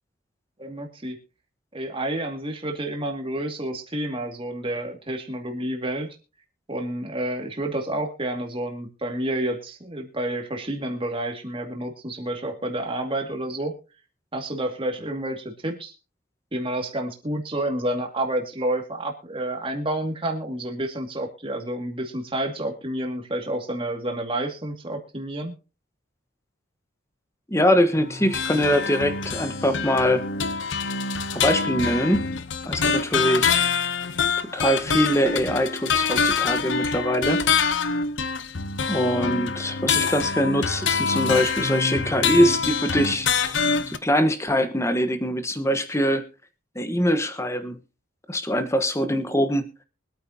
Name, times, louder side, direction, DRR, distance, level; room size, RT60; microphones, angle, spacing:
voice 1, 0.6-1.2 1.7-6.1 6.7-13.7 14.3-15.9 16.5-25.5, right 1 dB, 25° right, 3 dB, 2.2 m, -29 dB
voice 2, 27.5-30.2 31.3-32.2 32.6-33.7 34.5-37.4 38.9-43.3 43.9-46.2 46.7-47.8 48.3-49.6, equal, 15° left, 9 dB, 1.2 m, -23 dB
sound 1, 27.9-44.0, left 5 dB, 65° left, 0.9 m, -25 dB
24.0 x 9.0 x 2.8 m, 0.32 s
head